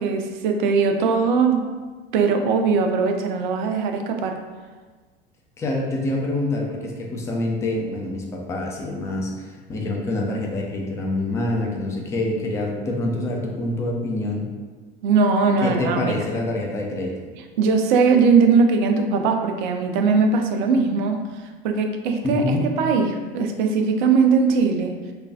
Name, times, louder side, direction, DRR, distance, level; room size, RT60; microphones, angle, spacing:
voice 1, 0.0-1.7 2.1-4.4 15.0-16.2 17.6-21.3 21.6-24.9, right 5 dB, 55° right, 4 dB, 0.4 m, -20 dB
voice 2, 5.6-14.5 15.6-17.2 22.2-22.6, left 2 dB, 10° left, 0 dB, 0.3 m, -26 dB
3.2 x 2.2 x 2.6 m, 1.4 s
figure-of-eight pair, 75°, 29 cm